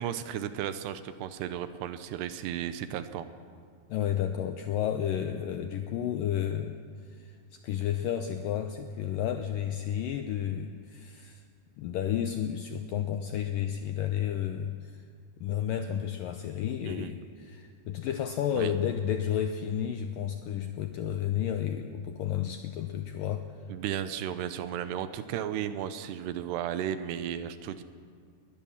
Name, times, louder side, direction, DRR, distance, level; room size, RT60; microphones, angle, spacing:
voice 1, 0.0-3.3 16.8-17.1 18.6-18.7 23.7-27.8, right 10 dB, 80° right, 11 dB, 2.9 m, -34 dB
voice 2, 3.9-6.8 7.1-11.4 11.8-15.0 15.4-23.5, left 9 dB, 85° left, 7 dB, 2.0 m, -32 dB
21.5 x 18.5 x 7.3 m, 2.1 s
omnidirectional pair, 4.9 m